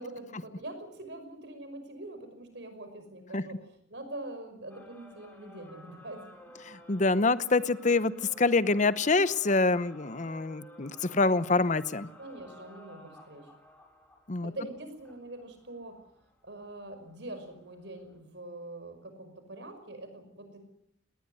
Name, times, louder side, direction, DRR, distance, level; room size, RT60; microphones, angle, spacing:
voice 1, 0.0-3.6 3.9-6.3 12.2-13.5 14.4-16.0 16.4-20.6, right 1 dB, 65° right, 8 dB, 5.7 m, -43 dB
sound 1, 4.7-18.2, left 1 dB, 10° left, 6.6 m, -55 dB
voice 2, 6.6-8.1 8.4-12.1 14.3-14.5, left 3 dB, 40° left, 15 dB, 0.8 m, -26 dB
20.0 x 19.0 x 9.7 m, 0.78 s
head